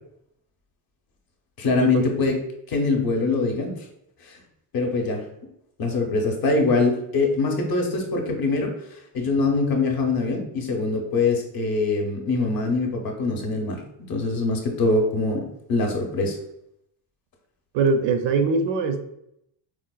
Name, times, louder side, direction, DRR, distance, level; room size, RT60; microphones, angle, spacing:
voice 1, 1.6-2.4 2.7-3.7 4.2-4.4 4.7-5.2 5.8-8.7 9.1-13.8 14.1-16.4, left 3 dB, 45° left, 2 dB, 0.7 m, -23 dB
voice 2, 17.7-19.0, right 4 dB, 65° right, 7 dB, 0.5 m, -22 dB
4.4 x 2.0 x 2.3 m, 0.77 s
cardioid pair, 140°, 50 cm